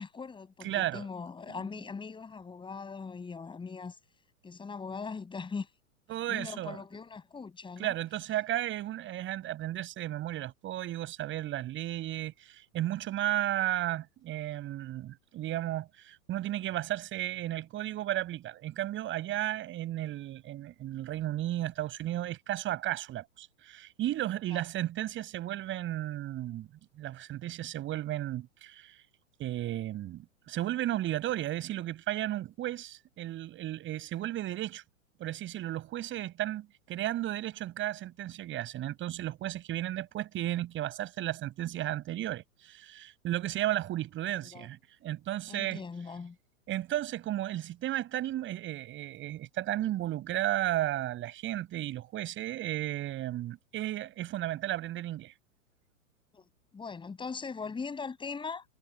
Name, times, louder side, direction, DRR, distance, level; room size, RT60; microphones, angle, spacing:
voice 1, 0.0-4.0 4.4-5.7 6.3-7.9 24.5-24.6 44.3-44.7 45.5-46.4 56.3-56.4 56.7-58.6, left 5 dB, 10° left, 6.6 m, -40 dB
voice 2, 0.6-1.1 1.5-1.6 6.1-6.8 7.8-26.7 27.0-29.0 29.4-34.8 35.2-45.8 46.7-55.3, right 13 dB, 30° right, 7.8 m, -34 dB
figure-of-eight pair, 110°, 41 cm